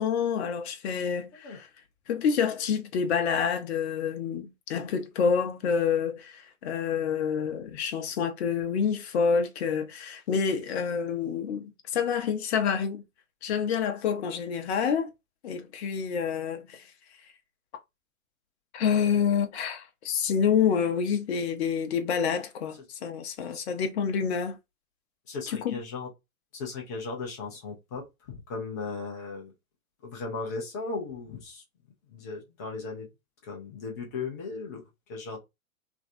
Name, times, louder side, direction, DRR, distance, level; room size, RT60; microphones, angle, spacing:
voice 1, 0.0-1.7 2.1-13.0 13.4-15.1 15.4-16.9 18.7-24.6 25.5-25.7, left 6 dB, 45° left, 0.7 m, -28 dB
voice 2, 25.3-26.1 26.5-29.5 30.0-31.6 32.1-33.1 33.4-34.8 35.1-35.4, left 4 dB, 15° left, 0.4 m, -37 dB
3.1 x 2.5 x 2.5 m
figure-of-eight pair, 120°, 44 cm